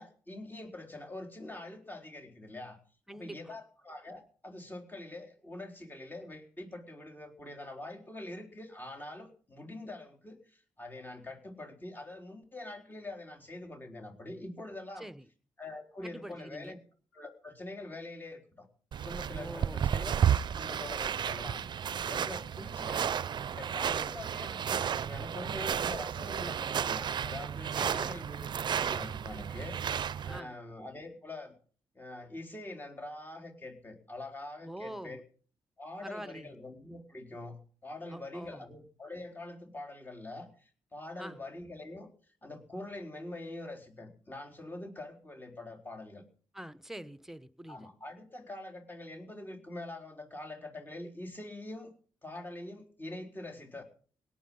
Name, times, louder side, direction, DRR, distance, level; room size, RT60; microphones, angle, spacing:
voice 1, 0.0-2.8 3.1-15.1 15.6-16.8 17.1-18.7 19.0-20.2 20.5-23.1 23.5-28.5 28.8-29.8 30.2-31.5 31.9-35.2 35.8-42.1 42.4-46.2 47.7-51.9 52.2-53.8, left 2 dB, 20° left, 3 dB, 4.4 m, -44 dB
voice 2, 3.1-3.5 15.0-15.3 16.0-16.7 19.3-19.9 23.8-24.1 27.7-28.1 30.3-30.6 34.6-35.2 36.0-36.5 38.1-38.6 41.2-41.4 46.5-47.9, right 1 dB, 5° right, 13 dB, 1.1 m, -45 dB
sound 1, 18.9-30.4, right 8 dB, 60° right, 0.6 m, -32 dB
18.0 x 10.5 x 5.6 m, 0.43 s
cardioid pair, 65°, 9 cm